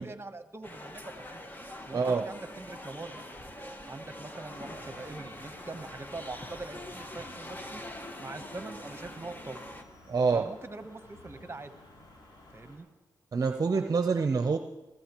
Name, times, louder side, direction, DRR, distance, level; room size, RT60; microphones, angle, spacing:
voice 1, 0.0-1.4 1.9-3.4 3.9-7.8 8.2-9.7 10.3-11.7 12.5-12.9, right 3 dB, 35° right, 9 dB, 1.1 m, -43 dB
sound 1, 0.6-9.8, left 1 dB, 25° left, 1.6 m, -44 dB
voice 2, 1.9-2.3 10.1-10.5 13.3-14.6, right 4 dB, 55° right, 7 dB, 0.7 m, -26 dB
sound 2, 4.5-12.8, left 2 dB, 80° left, 3.5 m, -53 dB
21.5 x 15.0 x 3.1 m, 1.1 s
cardioid pair, 45°, 8 cm